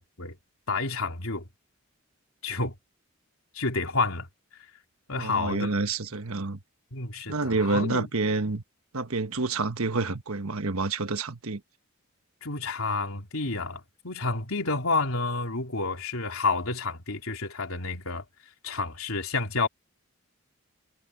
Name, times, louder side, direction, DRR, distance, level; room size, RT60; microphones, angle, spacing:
voice 1, 0.7-1.5 2.4-2.7 3.5-4.3 5.1-5.7 6.9-8.1 12.4-18.2 18.6-19.7, left 3 dB, 75° left, 3.1 m, -29 dB
voice 2, 5.2-6.6 7.3-8.6 8.9-11.6, right 3 dB, 80° right, 1.3 m, -28 dB
head